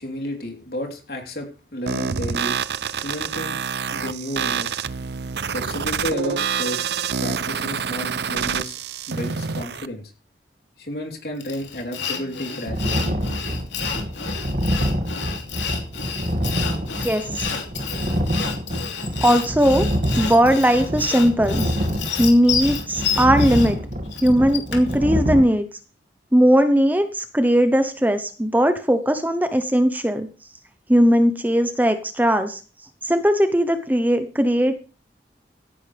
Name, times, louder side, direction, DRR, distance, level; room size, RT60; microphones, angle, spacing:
voice 1, 0.0-2.6 2.9-3.6 3.9-4.8 5.5-6.8 7.2-8.8 9.1-10.1 10.8-13.2, equal, 55° left, 2 dB, 3.9 m, -32 dB
sound 1, 1.9-9.9, right 6 dB, 65° right, 0.6 m, -27 dB
Sawing, 11.4-25.0, left 6 dB, 85° left, 3.0 m, -30 dB
sound 2, 12.7-25.4, equal, 45° right, 2.2 m, -26 dB
voice 2, 17.0-17.5 19.2-19.9 20.2-21.6 22.2-23.8 24.2-25.7 26.3-30.3 30.9-32.6 33.0-34.7, equal, 10° right, 9 dB, 0.9 m, -18 dB
16.5 x 11.0 x 3.5 m, 0.35 s
head